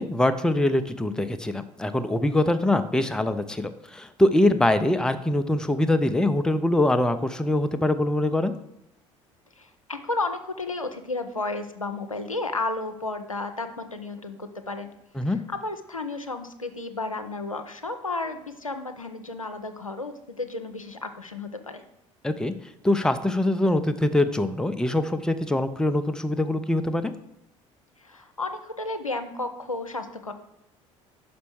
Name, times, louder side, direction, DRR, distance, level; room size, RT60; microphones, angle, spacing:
voice 1, 0.0-8.5 15.2-15.4 22.2-22.5 22.8-27.1, left 1 dB, 5° left, 9 dB, 0.5 m, -23 dB
voice 2, 9.6-14.9 15.3-21.8 28.0-30.3, left 2 dB, 90° left, 7 dB, 0.5 m, -33 dB
5.5 x 5.1 x 6.1 m, 0.83 s
figure-of-eight pair, 60°, 17 cm